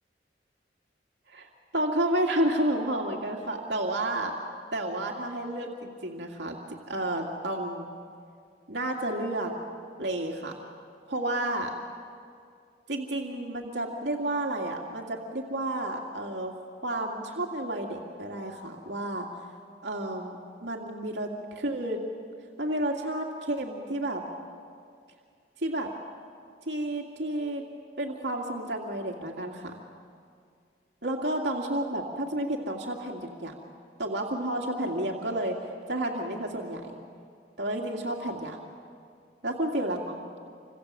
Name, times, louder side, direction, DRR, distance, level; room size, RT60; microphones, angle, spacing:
voice 1, 1.3-4.3 4.7-6.6 6.9-7.9 8.7-9.5 10.0-10.6 11.1-11.7 12.9-16.5 16.8-19.3 19.8-22.0 22.6-24.2 25.6-25.9 26.7-27.6 28.0-29.7 31.0-33.5 34.0-35.6 35.9-36.9 37.6-38.6 39.4-40.2, right 1 dB, 80° right, 0 dB, 2.5 m, -31 dB
28.5 x 26.0 x 7.6 m, 2.3 s
head